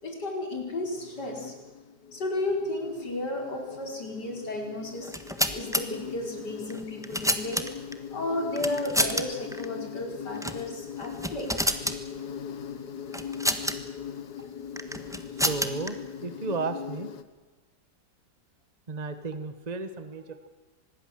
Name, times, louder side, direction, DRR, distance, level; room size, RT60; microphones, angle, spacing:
voice 1, 0.0-1.5 2.1-5.2 5.5-7.6 8.1-11.6, left 2 dB, 90° left, 1 dB, 5.5 m, -33 dB
Insect, 0.5-17.2, left 7 dB, 75° left, 1.9 m, -40 dB
sound 1, 5.0-5.8 6.7-7.9 8.6-9.2 9.5-9.7 10.4-10.6 11.0-12.0 13.1-13.8 14.8-15.9, equal, ahead, 1.3 m, -28 dB
voice 2, 15.3-17.1 18.9-20.5, right 3 dB, 25° right, 10 dB, 1.3 m, -34 dB
25.5 x 20.5 x 7.6 m, 1.2 s
omnidirectional pair, 1.8 m